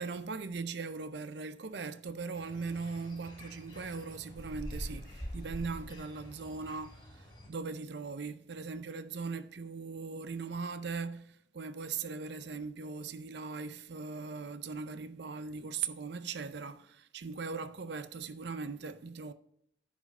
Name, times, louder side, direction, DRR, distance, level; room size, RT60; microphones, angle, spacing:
voice 1, 0.0-19.3, right 4 dB, 65° right, 0.5 m, -39 dB
sound 1, 2.4-7.5, equal, 25° left, 3.1 m, -45 dB
10.0 x 4.8 x 5.3 m
head